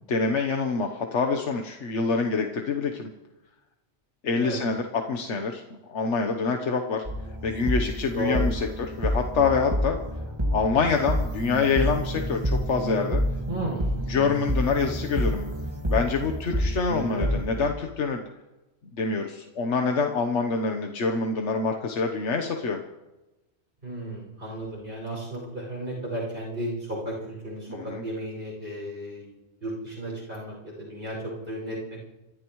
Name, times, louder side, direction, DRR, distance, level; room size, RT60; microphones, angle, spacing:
voice 1, 0.1-3.1 4.2-7.0 7.4-10.0 10.5-13.2 14.1-15.5 15.9-18.2 18.9-22.8 27.7-28.0, left 4 dB, 85° left, 4 dB, 1.4 m, -26 dB
sound 1, 7.1-17.7, equal, 25° right, 1.8 m, -28 dB
voice 2, 13.5-13.9 17.0-17.3 23.8-29.3 29.6-31.8, right 1 dB, 55° right, -3 dB, 6.2 m, -34 dB
27.5 x 14.0 x 3.1 m, 1.0 s
omnidirectional pair, 1.2 m